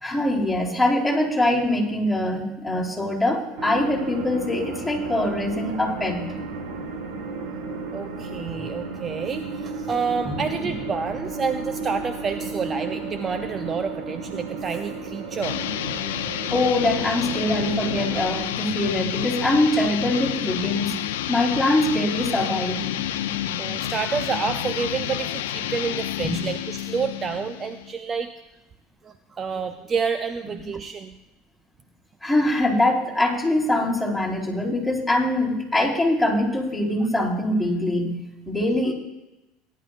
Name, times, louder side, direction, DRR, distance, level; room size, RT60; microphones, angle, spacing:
voice 1, 0.0-6.3 10.3-10.7 16.5-21.0 21.3-22.8 26.2-26.4 32.2-38.1 38.5-38.9, left 1 dB, ahead, -4 dB, 4.3 m, -23 dB
sound 1, 3.6-18.4, right 3 dB, 65° right, 1.7 m, -33 dB
voice 2, 7.9-15.6 23.6-28.3 29.0-31.1, right 5 dB, 30° right, 8 dB, 0.6 m, -29 dB
sound 2, 15.4-27.9, left 11 dB, 80° left, 0.6 m, -29 dB
19.0 x 11.0 x 2.5 m, 0.99 s
hypercardioid pair, 80°, 0 cm